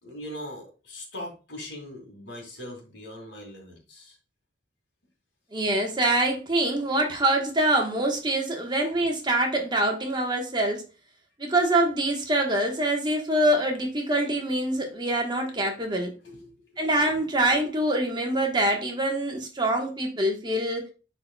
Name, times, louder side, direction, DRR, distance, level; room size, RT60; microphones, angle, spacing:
voice 1, 0.0-4.2 16.2-16.5, left 1 dB, 75° left, 1 dB, 2.2 m, -40 dB
voice 2, 5.5-10.8 11.4-16.1 16.8-20.9, right 1 dB, 25° right, 1 dB, 1.2 m, -25 dB
10.5 x 4.0 x 2.2 m, 0.32 s
head